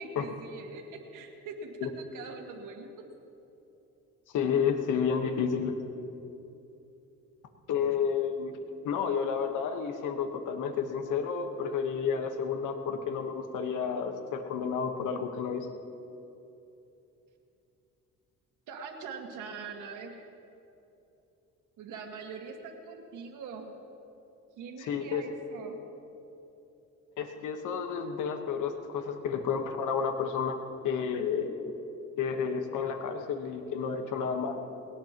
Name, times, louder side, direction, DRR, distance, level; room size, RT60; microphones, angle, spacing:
voice 1, 0.0-2.9 18.7-20.3 21.8-23.7 24.6-25.8, right 4 dB, 85° right, 2 dB, 1.9 m, -42 dB
voice 2, 4.3-5.8 7.7-8.5 8.8-15.7 24.8-25.2 27.2-30.6 30.8-31.6 32.2-34.6, left 6 dB, 85° left, 5 dB, 1.3 m, -31 dB
20.5 x 18.0 x 3.0 m, 2.9 s
cardioid pair, 90°, 30 cm